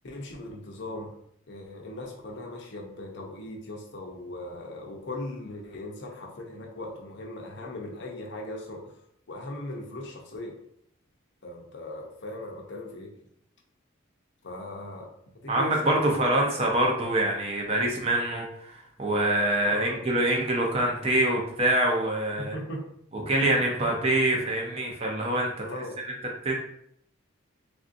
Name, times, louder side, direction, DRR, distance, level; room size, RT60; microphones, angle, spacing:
voice 1, 0.0-1.1 1.5-8.9 9.3-10.6 11.4-13.1 14.4-15.1 15.4-16.3 19.7-20.0 22.4-22.8 25.6-26.0, left 1 dB, 55° left, 0 dB, 0.6 m, -38 dB
voice 2, 15.5-22.5 23.1-25.6 26.4-26.5, right 1 dB, 30° right, 0 dB, 0.5 m, -25 dB
3.5 x 2.5 x 2.5 m, 0.71 s
head